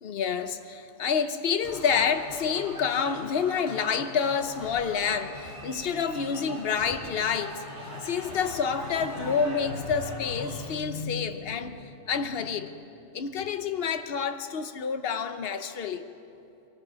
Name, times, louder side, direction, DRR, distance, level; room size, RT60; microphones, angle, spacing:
voice 1, 0.0-12.9 13.1-16.1, left 6 dB, 55° left, 9 dB, 1.1 m, -28 dB
sound 1, 1.6-10.8, equal, 15° right, 3.0 m, -41 dB
sound 2, 9.3-12.5, left 4 dB, 55° right, 3.6 m, -47 dB
23.0 x 19.0 x 6.3 m, 2.7 s
omnidirectional pair, 1.3 m